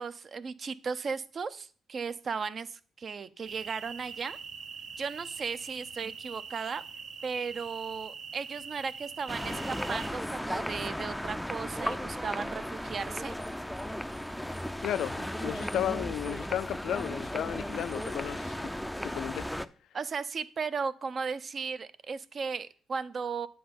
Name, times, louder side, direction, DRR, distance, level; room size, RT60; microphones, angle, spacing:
voice 1, 0.0-4.4 5.0-6.8 7.2-13.4 19.9-23.5, right 5 dB, 45° right, 0.6 m, -36 dB
sound 1, 3.4-10.1, right 6 dB, 70° right, 1.1 m, -43 dB
sound 2, 9.3-19.7, equal, ahead, 0.4 m, -35 dB
voice 2, 14.8-18.7 19.0-19.5, left 11 dB, 75° left, 0.4 m, -34 dB
8.7 x 3.9 x 6.9 m
cardioid pair, 90°, 0 cm